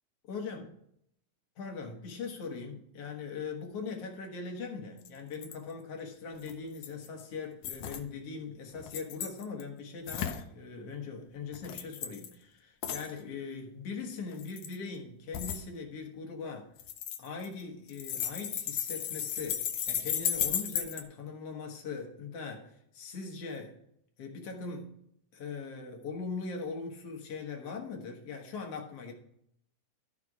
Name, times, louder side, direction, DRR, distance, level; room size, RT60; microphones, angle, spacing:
voice 1, 0.2-0.7 1.6-16.7 17.2-23.8 24.2-24.9 25.3-29.1, left 4 dB, 55° left, 2 dB, 2.2 m, -40 dB
sound 1, 5.1-5.2 5.3-5.5 6.5-7.1 7.6-8.0 8.8-9.6 10.1-10.4 11.5-12.3 12.8-13.1 14.3-14.8 15.3-15.6 16.8-17.6 17.9-21.0, left 10 dB, 85° left, 1.3 m, -34 dB
13.5 x 4.6 x 4.8 m, 0.73 s
omnidirectional pair, 3.7 m